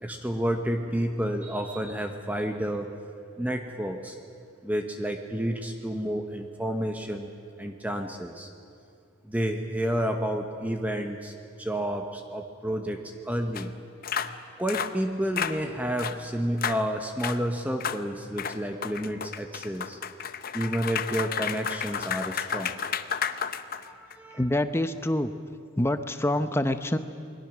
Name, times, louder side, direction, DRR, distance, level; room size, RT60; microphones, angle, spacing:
voice 1, 0.0-3.0 3.4-4.2 4.6-7.3 7.6-8.5 9.2-13.7 14.6-20.0 20.5-22.8 23.9-24.4, equal, 10° right, 4 dB, 1.0 m, -30 dB
sound 1, 13.6-13.7 14.0-14.3 14.7-14.9 15.4-15.6 16.0-16.2 16.6-16.8 17.2-17.4 17.8-18.0 18.4-24.1, left 7 dB, 45° left, 0.7 m, -32 dB
voice 2, 24.4-25.3 25.8-27.0, left 1 dB, 10° left, 9 dB, 0.8 m, -26 dB
28.5 x 21.0 x 6.2 m, 2.4 s
head